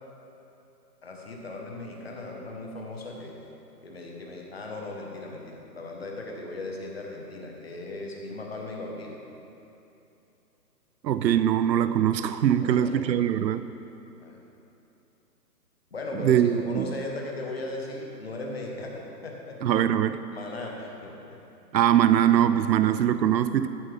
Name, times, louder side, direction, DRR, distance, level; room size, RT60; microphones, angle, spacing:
voice 1, 1.0-3.3 3.8-9.2 12.6-13.1 14.2-14.4 15.9-19.6 20.3-21.4, left 2 dB, 40° left, -1 dB, 1.1 m, -37 dB
voice 2, 11.0-13.7 16.2-16.9 19.6-20.2 21.7-23.7, right 10 dB, 85° right, 12 dB, 0.6 m, -22 dB
13.5 x 7.7 x 3.4 m, 2.9 s
hypercardioid pair, 180°, 50 cm